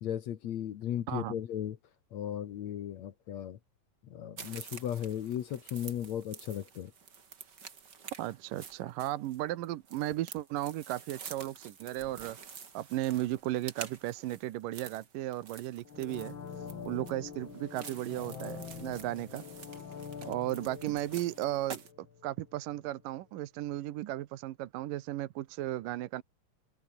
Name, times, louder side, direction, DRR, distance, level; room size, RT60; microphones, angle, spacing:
voice 1, 0.0-1.8 2.1-3.6 4.1-6.9, left 10 dB, 60° left, 2.1 m, -36 dB
sound 1, 4.4-21.9, right 6 dB, 35° right, 2.2 m, -49 dB
voice 2, 8.2-12.4 12.7-16.3 16.9-19.4 20.2-21.8 22.2-26.2, right 15 dB, 70° right, 2.5 m, -35 dB
sound 2, 15.8-22.7 23.0-23.1, left 6 dB, 40° left, 2.4 m, -45 dB
omnidirectional pair, 4.2 m